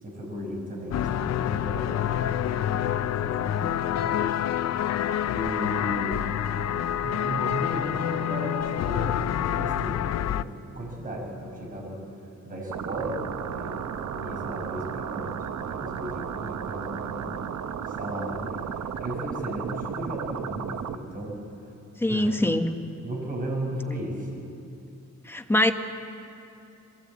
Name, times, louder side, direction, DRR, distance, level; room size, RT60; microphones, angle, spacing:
voice 1, 0.0-4.4 5.3-6.4 7.0-12.0 12.4-13.2 13.5-17.3 17.8-18.6 19.0-21.4 22.1-22.3 23.0-24.3, equal, 30° right, -1 dB, 5.4 m, -35 dB
sound 1, 0.9-10.4, left 10 dB, 60° left, 0.5 m, -27 dB
sound 2, 12.7-21.0, right 8 dB, 65° right, 0.9 m, -34 dB
voice 2, 22.0-22.8 25.2-25.7, left 1 dB, 10° left, 6 dB, 1.0 m, -23 dB
22.0 x 17.0 x 8.3 m, 2.7 s
wide cardioid pair, 160°, 29 cm